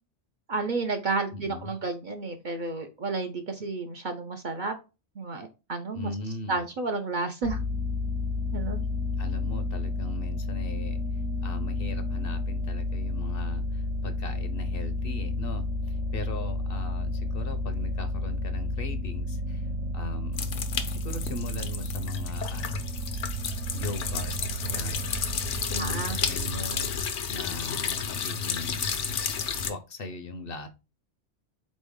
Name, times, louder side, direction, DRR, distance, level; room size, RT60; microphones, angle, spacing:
voice 1, 0.5-4.8 5.2-6.1 6.5-7.6 8.5-8.8 25.8-26.2, right 3 dB, 55° right, 5 dB, 0.6 m, -31 dB
voice 2, 1.3-1.7 5.9-6.6 9.2-20.5 20.9-23.0 23.7-24.3 24.6-25.1 25.7-26.9 27.3-28.9 29.5-30.7, left 3 dB, 60° left, 9 dB, 0.8 m, -39 dB
sound 1, 7.4-27.0, left 2 dB, 70° right, 1.0 m, -31 dB
sound 2, 20.3-29.7, left 6 dB, 80° left, 1.0 m, -32 dB
4.3 x 3.1 x 3.5 m, 0.28 s
omnidirectional pair, 1.2 m